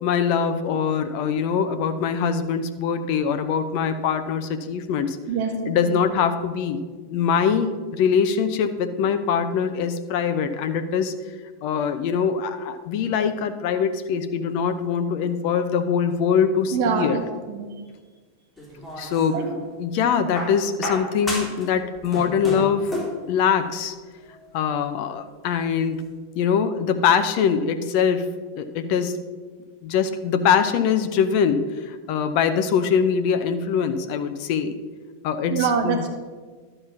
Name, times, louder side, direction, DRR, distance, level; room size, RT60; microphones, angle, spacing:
voice 1, 0.0-5.2 5.7-6.8 7.1-11.1 11.6-17.2 19.0-22.9 23.3-23.9 24.5-26.0 26.4-28.2 28.6-29.2 29.8-34.8 35.2-36.0, left 7 dB, 45° left, 9 dB, 0.7 m, -23 dB
voice 2, 5.3-6.0 16.7-17.2 17.5-17.7 19.3-19.5 35.5-36.1, right 6 dB, 50° right, 3 dB, 1.9 m, -24 dB
sound 1, 18.6-19.6 20.3-21.7 22.0-23.2 24.3-24.4, left 1 dB, 5° left, 3.3 m, -32 dB
12.0 x 5.5 x 7.0 m, 1.4 s
figure-of-eight pair, 90°, 0 cm